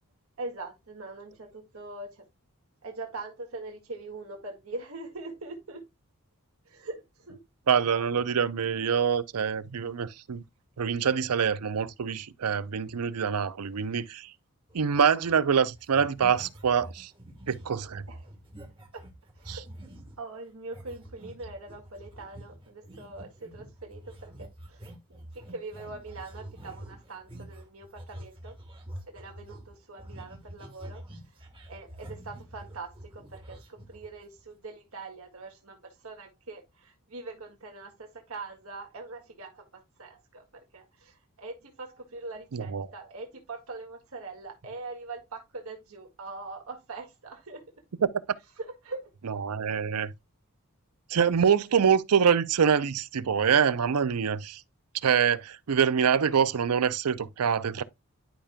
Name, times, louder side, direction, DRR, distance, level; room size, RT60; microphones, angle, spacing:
voice 1, 0.4-2.3 2.8-5.8 6.6-7.4 7.9-8.0 18.1-18.3 18.9-19.0 19.4-28.6 29.1-31.0 31.7-47.6 48.6-49.1, right 3 dB, 70° right, 1.8 m, -42 dB
voice 2, 7.7-10.4 10.8-14.3 14.7-17.1 17.5-18.0 19.5-19.6 42.5-42.9 48.0-48.1 49.3-50.1 51.1-54.6 55.0-57.8, right 7 dB, 85° right, 0.5 m, -25 dB
sound 1, 14.7-15.5 15.7-20.2 20.7-34.4, right 1 dB, 25° right, 1.3 m, -46 dB
11.5 x 5.1 x 2.2 m
head